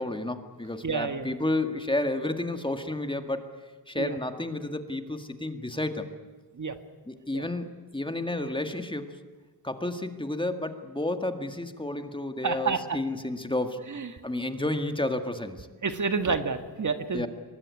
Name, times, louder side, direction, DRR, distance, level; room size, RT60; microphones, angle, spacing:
voice 1, 0.0-3.5 3.9-6.1 7.1-9.2 9.6-13.8 14.2-15.7 17.1-17.3, left 2 dB, 15° left, 7 dB, 2.0 m, -31 dB
voice 2, 0.8-1.3 4.0-4.2 6.6-6.8 7.3-7.4 12.4-12.8 13.9-14.1 15.8-17.3, right 5 dB, 50° right, 8 dB, 1.7 m, -29 dB
23.5 x 21.0 x 9.7 m, 1.3 s
cardioid pair, 80°, 39 cm